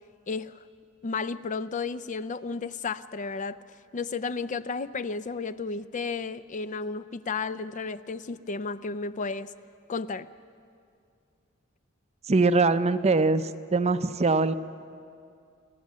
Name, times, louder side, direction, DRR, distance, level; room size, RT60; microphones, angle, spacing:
voice 1, 0.3-0.6 1.0-3.6 3.9-9.5 9.9-10.3, left 4 dB, 35° left, 14 dB, 0.4 m, -33 dB
voice 2, 12.3-14.5, right 3 dB, 30° right, 12 dB, 0.6 m, -22 dB
29.5 x 14.0 x 7.5 m, 2.4 s
head